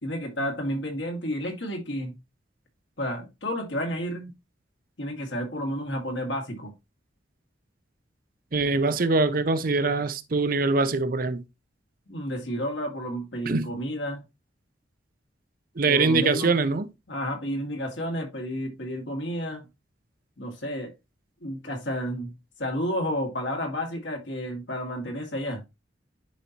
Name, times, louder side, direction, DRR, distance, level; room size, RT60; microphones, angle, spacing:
voice 1, 0.0-2.1 3.0-4.3 5.0-6.7 12.1-14.2 15.9-16.6 17.1-19.7 20.4-20.9 21.4-22.3 22.6-25.6, equal, 70° left, 2.1 m, -31 dB
voice 2, 8.5-11.4 13.5-13.7 15.8-16.9, right 3 dB, 50° right, 0.6 m, -23 dB
10.5 x 4.0 x 2.9 m
head